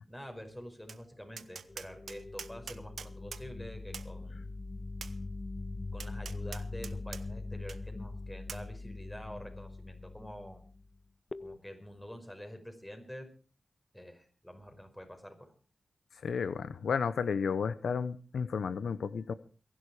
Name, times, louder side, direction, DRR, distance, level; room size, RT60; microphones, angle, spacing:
voice 1, 0.0-4.5 5.9-10.6 11.4-13.3 13.9-15.5, equal, 10° left, 6 dB, 5.3 m, -47 dB
Tap, 0.9-1.0 1.4-3.4 3.9-4.1 5.0-5.1 6.0-7.2 7.7-7.8 8.5-8.6, right 6 dB, 80° right, 0.8 m, -44 dB
sound 1, 1.7-11.0 11.3-11.6, left 3 dB, 35° left, 0.8 m, -42 dB
voice 2, 16.2-19.3, left 6 dB, 85° left, 15 dB, 0.7 m, -32 dB
22.5 x 11.0 x 4.9 m, 0.38 s
cardioid pair, 60°, 0 cm